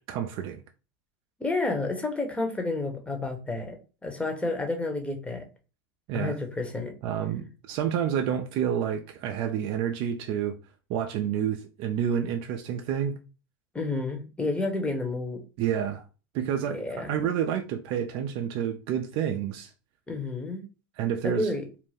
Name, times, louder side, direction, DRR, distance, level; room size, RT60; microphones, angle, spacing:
voice 1, 0.1-0.6 6.1-6.4 7.0-10.6 10.9-13.2 15.6-16.1 16.3-19.7 21.0-21.5, right 9 dB, 50° right, 0.4 m, -29 dB
voice 2, 1.4-3.8 4.0-5.5 6.1-6.9 13.7-15.4 16.7-17.1 20.1-20.6 21.2-21.6, left 2 dB, 10° left, 0.9 m, -30 dB
2.5 x 2.1 x 3.4 m
hypercardioid pair, 95°, 12 cm